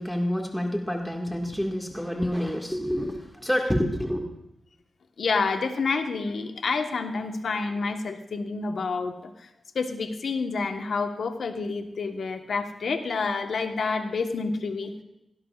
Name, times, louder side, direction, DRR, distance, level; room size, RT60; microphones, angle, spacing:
voice 1, 0.0-4.3, equal, 5° left, 1 dB, 1.9 m, -28 dB
voice 2, 5.2-9.5 9.7-15.0, left 4 dB, 75° left, 6 dB, 1.3 m, -28 dB
17.5 x 17.0 x 2.5 m, 0.87 s
cardioid pair, 70°, 0 cm